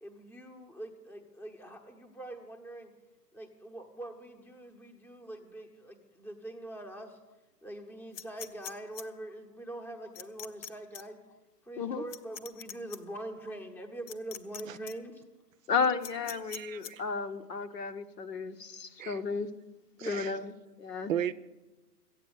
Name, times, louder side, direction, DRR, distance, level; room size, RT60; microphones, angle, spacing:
voice 1, 0.0-2.9 3.3-7.2 7.6-11.2 11.6-15.2 20.0-20.3, right 1 dB, 5° left, 0.9 m, -43 dB
sound 1, 8.1-9.0 10.2-10.7 10.9-11.0 12.1-13.0 14.1-14.6 14.9-15.0 16.0-16.9, left 8 dB, 50° left, 0.9 m, -42 dB
voice 2, 15.7-19.5 20.1-20.5 20.8-21.1, left 5 dB, 75° left, 1.3 m, -33 dB
voice 3, 16.5-17.0 19.0-19.2 20.0-20.3 21.1-21.3, right 10 dB, 55° right, 0.6 m, -35 dB
13.5 x 8.8 x 8.4 m
hypercardioid pair, 125°, 49 cm